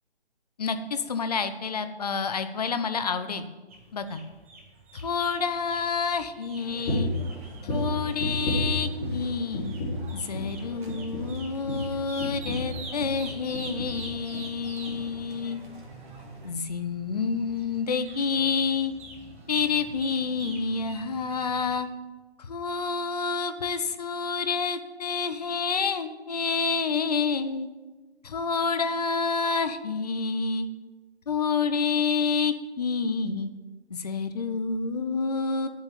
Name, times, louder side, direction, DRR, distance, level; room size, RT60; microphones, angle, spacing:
voice 1, 0.6-3.4 3.9-4.2 4.9-7.1 7.6-9.7 10.1-15.6 16.4-18.9 19.5-21.9 22.4-27.7 28.2-30.7 31.3-33.5 33.9-35.7, left 5 dB, 40° left, 10 dB, 0.8 m, -28 dB
sound 1, 3.7-21.8, right 3 dB, 15° right, 0.6 m, -47 dB
sound 2, 6.6-16.5, right 1 dB, 50° right, 2.2 m, -48 dB
sound 3, 6.8-7.2 7.6-9.3 9.5-10.1 10.3-10.6 10.9-13.2 13.5-14.0 14.3-14.5 14.9-15.0, left 1 dB, 20° left, 3.6 m, -31 dB
8.0 x 7.3 x 8.5 m, 1.2 s
figure-of-eight pair, 140°, 32 cm